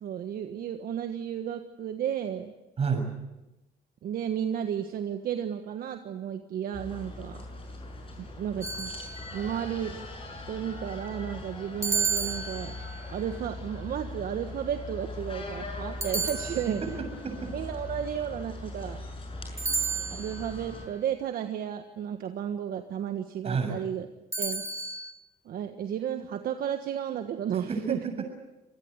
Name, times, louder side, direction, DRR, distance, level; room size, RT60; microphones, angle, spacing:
voice 1, 0.0-2.5 4.0-7.4 8.2-8.9 9.3-10.0 10.5-12.7 13.1-17.0 17.5-19.0 20.2-24.1 24.4-24.6 25.4-28.0, right 9 dB, 60° right, 7 dB, 1.5 m, -33 dB
voice 2, 2.8-3.1 16.8-17.5 23.4-23.8 27.7-28.3, right 5 dB, 35° right, 5 dB, 7.0 m, -30 dB
sound 1, 6.7-20.9, left 2 dB, 35° left, 6.7 m, -40 dB
sound 2, 8.6-9.5 11.8-13.1 16.0-17.1 19.6-20.5 24.3-25.1, right 4 dB, 15° right, 2.3 m, -32 dB
26.0 x 19.5 x 8.2 m, 0.97 s
cardioid pair, 110°, 17 cm